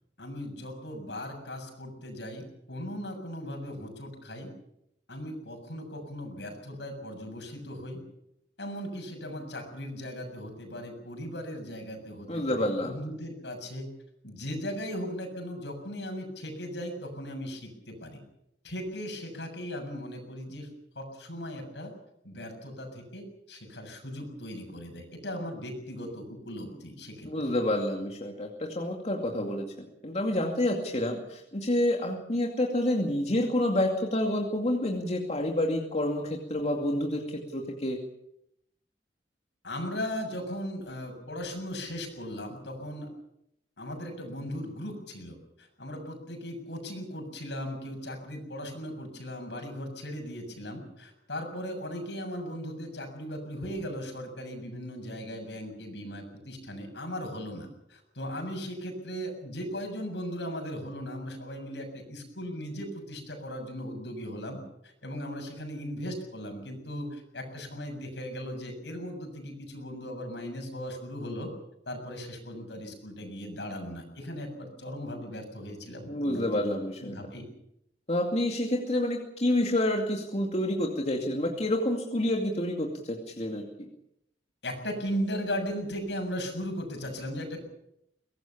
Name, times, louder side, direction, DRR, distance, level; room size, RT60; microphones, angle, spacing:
voice 1, 0.2-4.5 5.1-8.0 8.6-13.9 14.2-18.2 18.6-20.7 21.0-21.9 22.2-27.3 39.6-43.1 43.8-71.5 71.9-77.5 84.6-87.6, equal, 75° left, 3 dB, 7.1 m, -38 dB
voice 2, 12.3-13.0 27.2-38.0 76.1-77.2 78.1-83.6, left 1 dB, 40° left, 1 dB, 2.4 m, -28 dB
23.0 x 19.0 x 7.2 m, 0.79 s
head